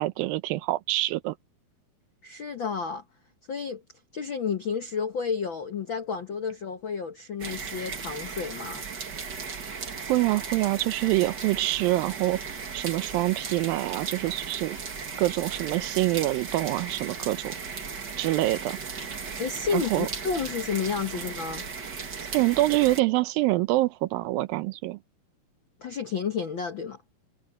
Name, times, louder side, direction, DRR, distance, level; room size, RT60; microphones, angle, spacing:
voice 1, 0.0-1.3 10.1-14.8 15.2-17.6 18.2-18.8 19.7-20.1 22.3-25.0, right 18 dB, 80° right, 2.4 m, -26 dB
voice 2, 2.2-3.0 3.5-3.8 4.1-8.8 19.4-21.6 25.8-27.0, left 6 dB, 75° left, 1.1 m, -31 dB
sound 1, 7.4-23.0, right 5 dB, 35° right, 1.9 m, -36 dB
omnidirectional pair, 4.2 m